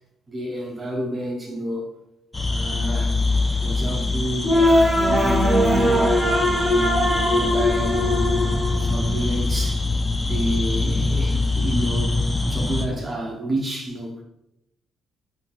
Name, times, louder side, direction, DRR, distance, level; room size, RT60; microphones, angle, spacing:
voice 1, 0.3-1.9 2.5-3.1 3.6-6.1 6.7-7.0 7.4-8.1 8.7-9.8 10.2-14.2, right 1 dB, 30° right, 0 dB, 0.6 m, -30 dB
sound 1, 2.3-12.9, left 3 dB, 20° left, 0.3 m, -24 dB
sound 2, 4.4-9.5, left 1 dB, 5° right, 0.9 m, -20 dB
2.8 x 2.8 x 2.3 m, 0.85 s
cardioid pair, 90°, 0 cm